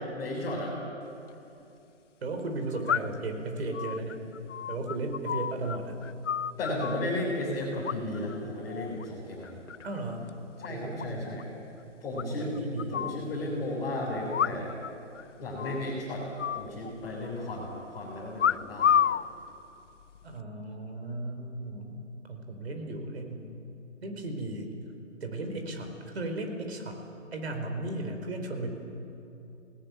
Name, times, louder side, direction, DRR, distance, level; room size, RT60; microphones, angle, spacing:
voice 1, 0.2-0.8 6.6-9.6 10.6-11.5 12.0-12.5 12.9-14.7 15.4-16.3 16.5-19.0, left 1 dB, 10° left, -7 dB, 3.7 m, -34 dB
sound 1, 1.1-1.2 2.9-3.3 3.7-5.8 6.0-7.1 7.8-8.4 8.7-9.0 9.4-10.0 10.3-10.4 10.6-10.7 11.0-11.1 11.4-11.5 12.2-13.2 14.3-14.9 15.2-15.3 15.6-15.9 16.4-17.3 18.4-19.2 20.0-20.4, left 9 dB, 70° left, 0.7 m, -30 dB
voice 2, 2.2-4.2 4.7-6.0 9.8-10.3 10.7-11.3 12.2-13.1 20.2-22.0 22.3-23.5 24.0-24.7 25.2-27.0 27.3-28.7, right 2 dB, 55° right, 5 dB, 4.9 m, -35 dB
27.0 x 19.0 x 9.4 m, 2.7 s
hypercardioid pair, 175°, 38 cm